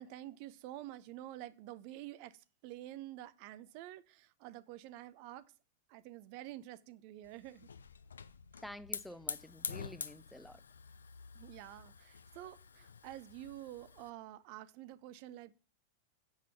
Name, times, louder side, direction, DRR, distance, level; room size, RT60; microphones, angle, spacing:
voice 1, 0.0-5.5 5.9-7.7 8.5-8.6 11.3-15.5, right 14 dB, 45° right, 0.5 m, -49 dB
Hiss / Fire, 7.2-14.1, left 6 dB, 70° left, 0.5 m, -47 dB
voice 2, 8.6-10.6, left 1 dB, ahead, 0.5 m, -50 dB
7.4 x 5.6 x 5.9 m
figure-of-eight pair, 90°, 0 cm